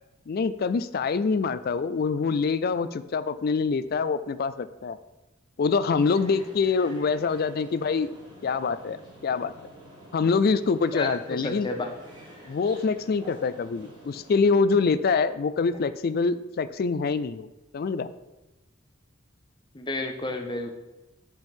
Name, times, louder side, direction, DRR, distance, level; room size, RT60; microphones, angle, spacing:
voice 1, 0.3-5.0 5.6-8.1 8.4-9.5 10.1-11.7 12.5-17.5 17.7-18.1, left 4 dB, 45° left, 13 dB, 0.3 m, -25 dB
sound 1, 6.0-14.4, equal, 20° right, 1.6 m, -48 dB
voice 2, 10.9-11.9 19.7-20.7, left 2 dB, 25° left, 3 dB, 0.7 m, -31 dB
10.5 x 4.5 x 3.6 m, 1.0 s
head